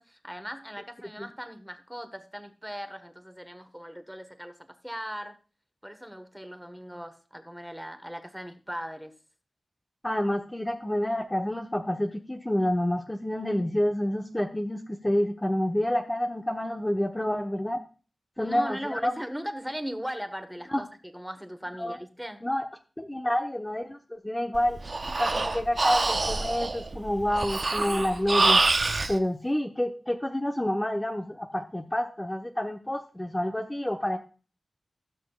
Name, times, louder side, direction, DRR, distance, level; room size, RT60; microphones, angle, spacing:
voice 1, 0.0-4.6 4.8-5.4 5.8-9.2 18.4-20.9 21.1-22.4, equal, 5° right, 1.4 m, -38 dB
voice 2, 10.0-17.8 18.4-19.2 20.7-20.8 21.8-22.0 22.4-22.7 23.0-24.8 25.2-28.6 29.1-34.2, left 1 dB, 15° left, 1.0 m, -28 dB
Breathing, 24.5-29.1, right 3 dB, 50° right, 0.9 m, -26 dB
18.0 x 6.3 x 2.4 m
cardioid pair, 60°, 0 cm